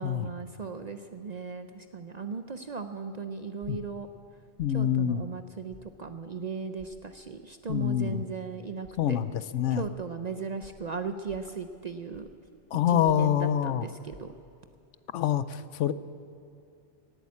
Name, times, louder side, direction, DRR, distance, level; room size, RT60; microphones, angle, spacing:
voice 1, 0.0-4.1 4.7-9.2 9.7-12.3 12.9-14.3, right 5 dB, 50° right, 8 dB, 0.5 m, -37 dB
sound 1, 3.6-3.9 4.6-4.8 5.7-5.9 6.8-6.9 7.7-7.9 8.8-9.0 9.8-9.9 10.6-10.8 11.3-11.5 12.1-12.4 13.0-13.3 14.1-14.2, right 3 dB, 75° right, 1.8 m, -52 dB
voice 2, 4.6-5.2 7.7-8.2 9.0-9.8 12.7-13.9 15.1-15.9, left 10 dB, 80° left, 15 dB, 0.9 m, -26 dB
17.5 x 8.7 x 8.4 m, 2.6 s
omnidirectional pair, 1.2 m